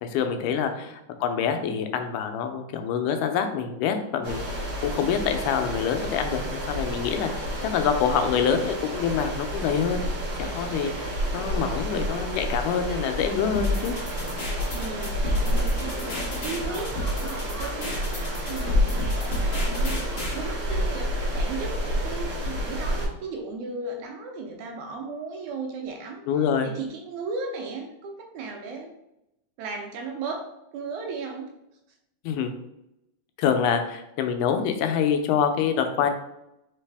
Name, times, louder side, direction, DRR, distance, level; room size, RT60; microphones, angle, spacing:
voice 1, 0.0-10.1 10.4-13.9 26.3-26.7 32.2-32.5 33.4-36.1, left 7 dB, 85° left, 6 dB, 2.1 m, -26 dB
sound 1, 4.2-23.1, equal, 50° right, 1.2 m, -29 dB
sound 2, 13.5-20.4, right 1 dB, 65° left, 0.8 m, -33 dB
voice 2, 14.7-20.1 20.3-26.2 26.6-28.9 29.6-30.5 30.7-31.5, right 4 dB, 80° right, 3 dB, 1.9 m, -36 dB
Laughter, 14.8-22.1, equal, 25° left, 0.9 m, -44 dB
4.7 x 3.4 x 3.3 m, 0.85 s
omnidirectional pair, 3.7 m